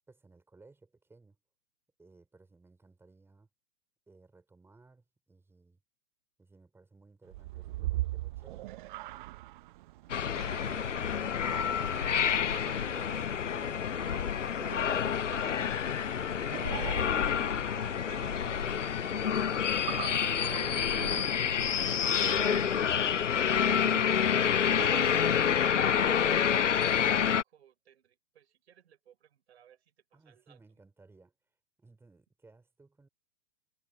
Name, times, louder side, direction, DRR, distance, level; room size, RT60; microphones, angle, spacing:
voice 1, 0.0-1.4 2.0-3.5 4.1-5.8 6.4-8.8 10.2-11.2 30.1-31.3 31.8-33.1, right 3 dB, 5° right, 4.9 m, -60 dB
sound 1, 7.3-26.0, right 17 dB, 40° right, 1.2 m, -43 dB
sound 2, 10.1-27.4, left 8 dB, 85° left, 0.7 m, -28 dB
voice 2, 10.1-10.9 12.6-17.6 18.1-19.7 23.3-23.5 26.0-30.6, right 9 dB, 60° right, 6.7 m, -58 dB
figure-of-eight pair, 115°, 36 cm